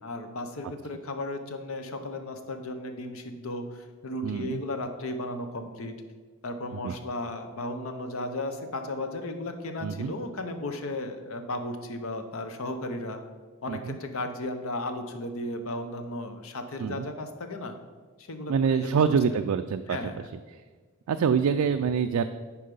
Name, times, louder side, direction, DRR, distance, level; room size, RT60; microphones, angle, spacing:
voice 1, 0.0-5.9 6.4-13.2 13.6-17.8 18.2-18.9 19.9-20.3, left 2 dB, 70° left, 7 dB, 0.8 m, -35 dB
voice 2, 4.2-4.6 6.7-7.0 9.8-10.1 13.7-14.0 16.8-17.1 18.5-20.0 21.1-22.3, right 6 dB, 85° right, 8 dB, 0.3 m, -25 dB
10.0 x 4.7 x 5.3 m, 1.4 s
head